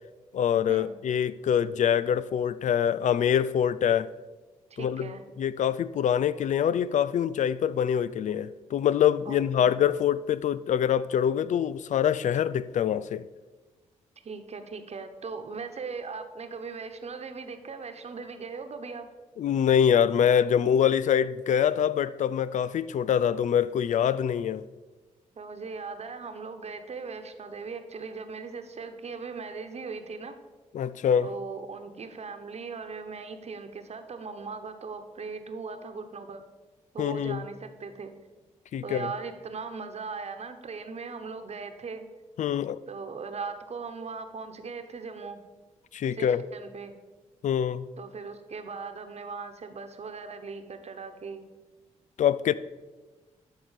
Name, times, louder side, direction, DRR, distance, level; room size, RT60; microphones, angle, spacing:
voice 1, 0.3-4.1 4.8-5.1 5.4-13.3 19.4-24.6 30.7-31.3 37.0-37.4 38.7-39.1 42.4-42.8 45.9-46.4 47.4-47.9 52.2-52.5, left 9 dB, 65° left, 0.4 m, -25 dB
voice 2, 4.7-5.2 9.2-9.7 14.2-19.1 25.3-30.3 31.2-36.4 36.9-38.1 38.8-42.1 42.9-45.4 46.1-46.9 48.0-51.4, right 4 dB, 50° right, 1.2 m, -39 dB
11.5 x 4.4 x 6.6 m
supercardioid pair, 55°, 14 cm